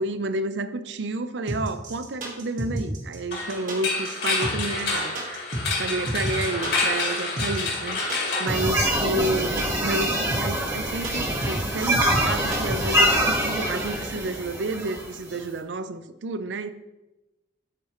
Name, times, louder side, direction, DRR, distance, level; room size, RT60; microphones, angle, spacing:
voice 1, 0.0-8.0 8.4-16.8, right 2 dB, 75° right, 0.5 m, -30 dB
sound 1, 1.5-13.2, right 1 dB, 45° right, 1.6 m, -31 dB
sound 2, 3.3-9.3, left 3 dB, 65° left, 2.2 m, -28 dB
sound 3, 8.5-15.4, right 1 dB, 20° right, 1.5 m, -25 dB
13.5 x 4.8 x 3.1 m
head